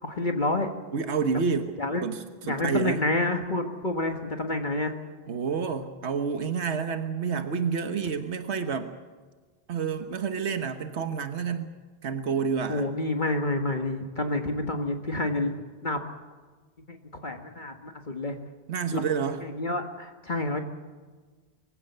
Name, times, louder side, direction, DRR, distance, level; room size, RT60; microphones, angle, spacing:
voice 1, 0.0-0.7 1.8-2.0 2.4-4.9 12.7-15.5 15.8-16.0 16.9-18.4 18.9-19.0 19.4-20.6, left 2 dB, 45° left, 4 dB, 1.7 m, -28 dB
voice 2, 0.9-3.0 5.3-8.9 9.7-11.7 12.0-12.9 18.7-19.4, right 6 dB, 85° right, 8 dB, 1.5 m, -29 dB
24.0 x 16.0 x 8.0 m, 1.4 s
omnidirectional pair, 1.1 m